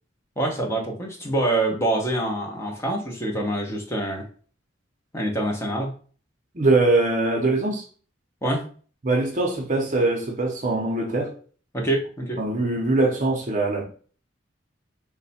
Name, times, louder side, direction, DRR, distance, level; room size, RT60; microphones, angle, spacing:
voice 1, 0.4-4.3 5.1-5.9 8.4-8.6 11.7-12.4, right 1 dB, 15° left, 0.7 m, -25 dB
voice 2, 6.5-7.9 9.0-11.3 12.4-13.8, right 2 dB, 40° right, 0.6 m, -22 dB
3.2 x 2.1 x 4.1 m
head